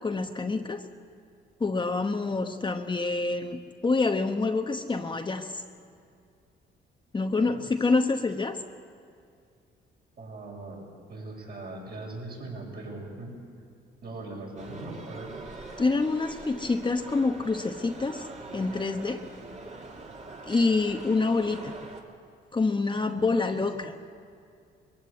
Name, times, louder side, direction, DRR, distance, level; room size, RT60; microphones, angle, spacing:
voice 1, 0.0-0.8 1.6-5.6 7.1-8.6 15.8-18.3 18.5-19.2 20.5-21.7 22.5-23.9, left 3 dB, 25° left, 5 dB, 1.0 m, -27 dB
voice 2, 10.2-10.8 11.1-13.3 14.0-15.3 22.9-23.6, right 2 dB, 50° right, -2 dB, 6.8 m, -40 dB
sound 1, 14.6-22.0, right 3 dB, 35° right, 2.7 m, -43 dB
22.0 x 15.5 x 8.4 m, 2.3 s
cardioid pair, 90°, 20 cm